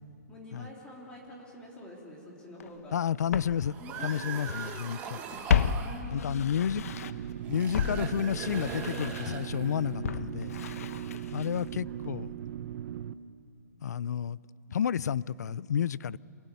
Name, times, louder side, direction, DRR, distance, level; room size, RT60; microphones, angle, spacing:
voice 1, 0.3-3.0 3.8-4.2 5.8-6.6 10.6-11.0 11.8-12.0, equal, 10° left, -3 dB, 3.6 m, -47 dB
Walk footsteps, 2.6-2.7 3.3-4.8 5.1-7.3 7.7-11.8 12.0-12.1, left 7 dB, 60° left, 0.9 m, -33 dB
voice 2, 2.9-3.8 4.0-5.2 6.1-6.8 7.5-10.5 11.3-12.3 13.8-14.4 14.7-16.2, left 8 dB, 80° left, 21 dB, 0.5 m, -30 dB
sound 1, 3.6-6.1 7.4-9.9, right 7 dB, 15° right, 1.5 m, -40 dB
sound 2, 6.8-13.1, right 11 dB, 50° right, 0.7 m, -38 dB
27.0 x 21.0 x 9.4 m, 2.6 s
hypercardioid pair, 170°, 9 cm